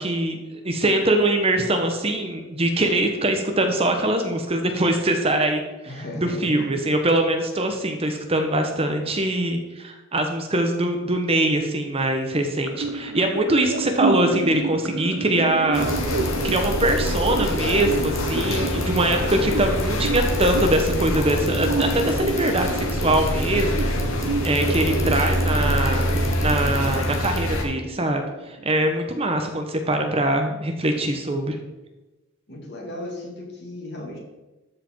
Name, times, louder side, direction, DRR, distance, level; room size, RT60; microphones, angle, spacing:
voice 1, 0.0-15.9 16.4-23.9 24.4-26.1 26.4-28.2 28.5-31.6, right 1 dB, 25° right, 5 dB, 0.9 m, -23 dB
voice 2, 5.8-6.6 32.5-34.2, left 1 dB, 50° left, -2 dB, 2.5 m, -35 dB
sound 1, 12.7-28.6, right 3 dB, 90° right, 0.6 m, -30 dB
sound 2, 15.7-27.6, left 1 dB, 75° left, 1.6 m, -25 dB
Bicycle, 15.7-27.5, left 3 dB, 15° left, 1.0 m, -40 dB
13.0 x 5.0 x 4.4 m, 1.1 s
head